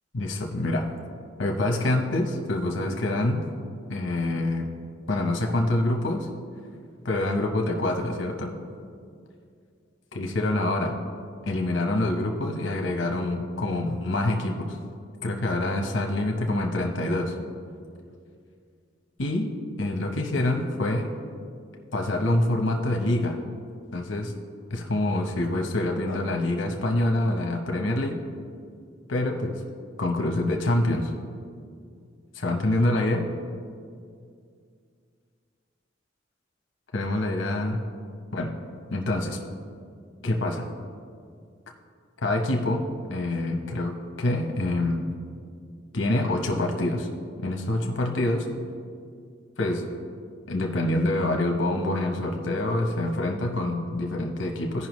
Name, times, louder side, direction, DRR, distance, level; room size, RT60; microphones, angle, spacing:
voice 1, 0.1-0.9 1.4-3.5 3.9-4.7 5.1-6.3 7.0-8.5 10.1-11.0 11.5-14.8 15.2-17.3 19.2-19.5 19.8-21.1 21.9-23.4 23.9-24.3 24.7-28.2 29.1-29.6 30.0-31.1 32.3-33.3 36.9-37.8 38.3-38.5 38.9-39.4 40.2-40.7 42.2-45.1 45.9-47.1 47.4-48.5 49.6-49.9 50.5-54.9, left 1 dB, 80° left, 2 dB, 0.8 m, -26 dB
15.5 x 5.5 x 3.1 m, 2.3 s
head